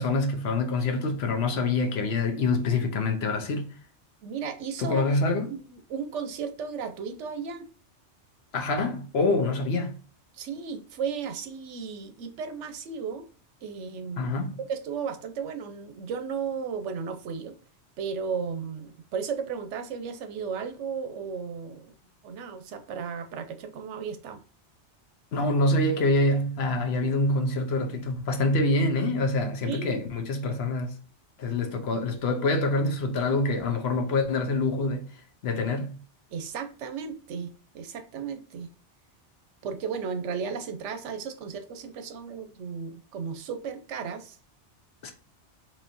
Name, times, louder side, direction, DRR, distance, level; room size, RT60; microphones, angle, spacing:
voice 1, 0.0-3.7 4.8-5.5 8.5-10.0 14.2-14.6 25.3-31.0 31.4-36.0 45.0-45.1, left 2 dB, 65° left, 0.9 m, -26 dB
voice 2, 4.2-5.6 5.9-7.7 10.3-13.3 13.6-14.3 14.6-17.5 18.0-21.9 22.2-24.4 29.6-30.0 36.3-38.7 39.6-44.4, right 6 dB, 80° right, 1.0 m, -34 dB
4.1 x 3.1 x 2.5 m
omnidirectional pair, 1.2 m